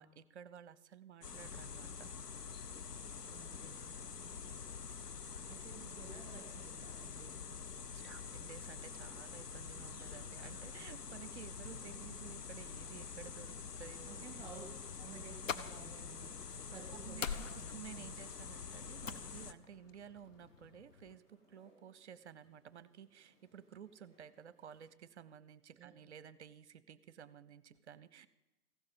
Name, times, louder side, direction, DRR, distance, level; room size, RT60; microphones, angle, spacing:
voice 1, 0.0-2.1 7.9-14.3 16.9-28.3, right 8 dB, 45° right, 18 dB, 0.7 m, -54 dB
sound 1, 1.2-19.5, left 6 dB, 90° left, 0.8 m, -46 dB
voice 2, 3.3-3.9 5.5-7.5 14.1-18.1 25.8-25.9, right 6 dB, 10° right, 3 dB, 2.8 m, -54 dB
sound 2, 6.9-24.9, equal, 40° left, 5.0 m, -73 dB
sound 3, 15.2-21.2, left 6 dB, 55° left, 0.9 m, -48 dB
15.0 x 11.5 x 5.5 m, 1.0 s
figure-of-eight pair, 130°, 46 cm